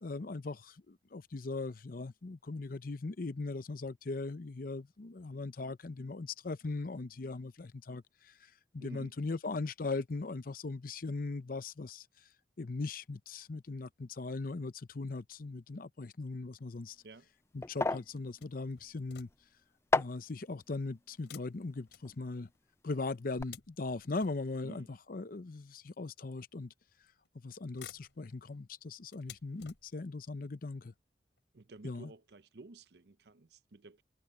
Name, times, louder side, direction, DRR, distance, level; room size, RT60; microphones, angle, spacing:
voice 1, 0.0-8.3 8.7-12.1 12.6-17.0 17.5-19.3 19.9-22.5 22.8-26.7 27.4-30.9 31.8-32.1, left 3 dB, 55° left, 0.7 m, -39 dB
voice 2, 8.8-9.1 17.0-17.3 24.6-24.9 31.5-34.0, right 2 dB, 65° right, 0.7 m, -52 dB
sound 1, 16.7-22.9 23.2-23.4, left 3 dB, 15° left, 0.4 m, -37 dB
sound 2, 18.4-19.6 21.2-22.6 23.1-24.8 25.7-25.8 26.9-27.3 27.6-30.2 30.9-31.0 31.4-31.5, left 9 dB, 90° left, 3.7 m, -56 dB
head